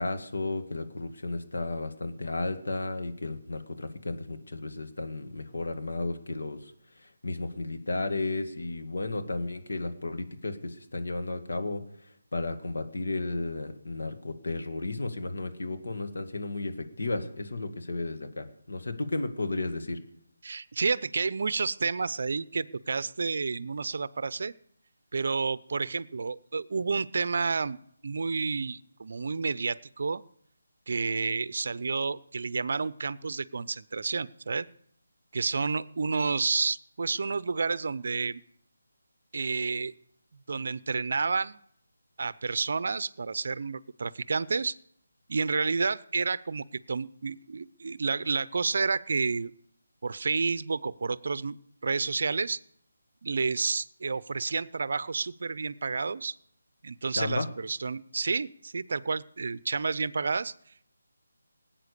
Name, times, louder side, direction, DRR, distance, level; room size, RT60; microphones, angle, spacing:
voice 1, 0.0-6.7 7.0-11.8 12.3-20.0 57.1-57.5, left 2 dB, 70° left, 7 dB, 2.2 m, -33 dB
voice 2, 20.4-24.5 25.1-27.8 28.0-30.2 30.9-34.7 35.3-38.4 39.3-39.9 40.5-41.6 42.2-44.8 45.3-49.5 50.0-51.6 51.8-52.6 53.2-56.3 56.8-60.5, right 4 dB, 55° right, 19 dB, 0.6 m, -30 dB
18.5 x 8.9 x 6.7 m, 0.72 s
figure-of-eight pair, 170°, 0 cm